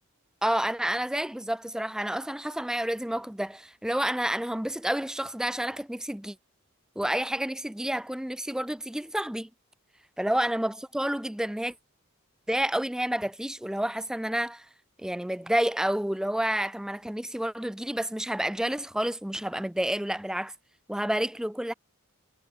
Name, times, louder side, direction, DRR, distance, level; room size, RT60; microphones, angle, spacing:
voice 1, 0.4-6.4 7.0-9.5 10.2-11.7 12.5-14.7 15.0-20.5 20.9-21.7, right 1 dB, 5° right, 0.4 m, -29 dB
head